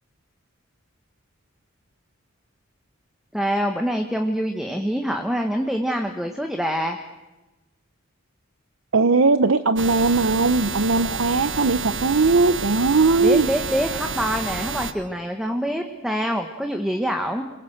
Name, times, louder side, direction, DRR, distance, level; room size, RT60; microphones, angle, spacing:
voice 1, 3.3-7.0 13.2-17.4, equal, ahead, 4 dB, 1.4 m, -25 dB
voice 2, 8.9-13.5, right 3 dB, 85° right, 10 dB, 0.8 m, -19 dB
sound 1, 9.8-14.9, right 5 dB, 65° right, 1.5 m, -30 dB
28.5 x 22.0 x 7.8 m, 1.1 s
head